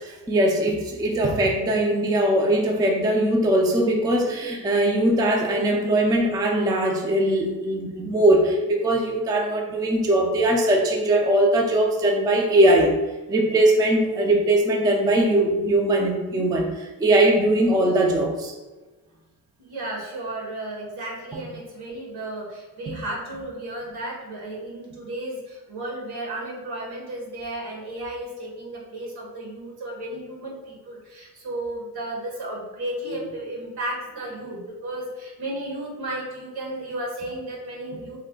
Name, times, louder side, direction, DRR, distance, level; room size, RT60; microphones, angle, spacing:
voice 1, 0.3-12.9 13.3-16.7 17.0-18.5, right 1 dB, 10° right, 0 dB, 0.3 m, -20 dB
voice 2, 19.6-38.2, right 1 dB, 75° right, -2 dB, 1.2 m, -34 dB
3.2 x 2.1 x 3.6 m, 1.2 s
wide cardioid pair, 140°, 38 cm